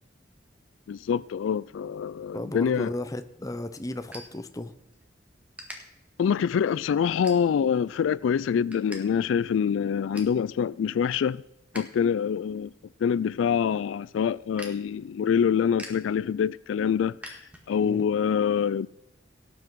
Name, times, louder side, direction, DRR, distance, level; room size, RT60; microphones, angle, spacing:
voice 1, 0.9-2.9 6.2-11.4 11.7-12.7 13.0-17.4 17.7-18.9, left 7 dB, 85° left, 0.3 m, -25 dB
voice 2, 2.3-4.7 17.8-18.1, left 1 dB, 20° left, 0.7 m, -34 dB
sound 1, 3.0-5.0 5.5-5.8 6.3-6.6 7.2-7.8 8.2-9.0 9.3-9.4 9.8-10.4 10.9-11.9 12.2-18.0, equal, 5° right, 1.7 m, -46 dB
18.0 x 8.0 x 4.7 m
head